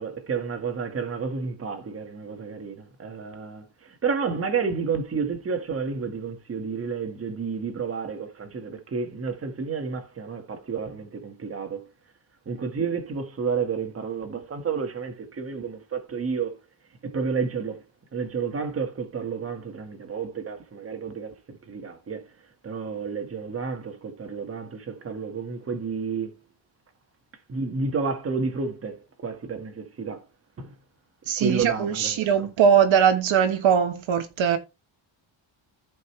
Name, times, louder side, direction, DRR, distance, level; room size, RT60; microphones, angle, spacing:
voice 1, 0.0-11.8 12.5-16.6 17.0-17.8 18.1-22.3 22.6-26.3 27.5-30.2 30.6-30.7 31.4-32.5, right 5 dB, 30° right, 1.6 m, -31 dB
voice 2, 31.3-34.6, right 7 dB, 70° right, 1.4 m, -21 dB
14.5 x 5.4 x 3.2 m
cardioid pair, 170°, 49 cm